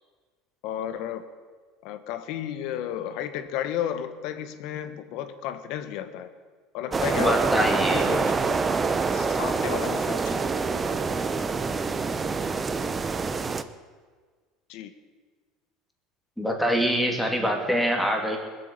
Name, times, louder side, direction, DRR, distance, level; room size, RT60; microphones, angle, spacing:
voice 1, 0.6-1.3 1.8-6.3 6.7-7.5 7.9-8.6 9.1-10.4 14.7-14.9, left 10 dB, 65° left, 10 dB, 1.2 m, -33 dB
sound 1, 6.9-13.6, right 4 dB, 20° right, 0.8 m, -26 dB
voice 2, 7.2-8.1 16.4-18.4, equal, ahead, 1 dB, 2.6 m, -24 dB
19.5 x 8.4 x 8.2 m, 1.5 s
supercardioid pair, 125°, 0 cm